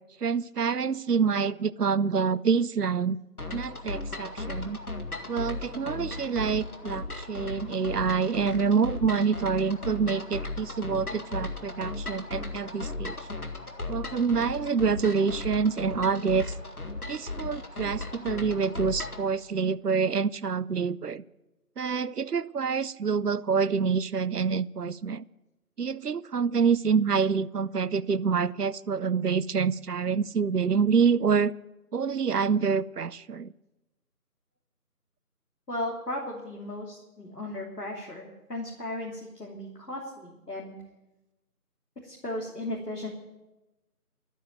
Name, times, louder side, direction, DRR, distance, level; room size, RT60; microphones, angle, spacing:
voice 1, 0.2-3.2 3.5-4.8 5.3-13.2 13.9-16.5 17.1-21.2 21.8-25.2 25.8-31.5 31.9-33.5, right 6 dB, 75° right, 20 dB, 0.7 m, -27 dB
sound 1, 3.4-19.3, left 2 dB, 65° left, 2.0 m, -36 dB
voice 2, 35.7-40.7 42.0-43.1, left 1 dB, 85° left, -2 dB, 3.3 m, -36 dB
13.0 x 9.2 x 9.2 m, 1.0 s
figure-of-eight pair, 175°, 47 cm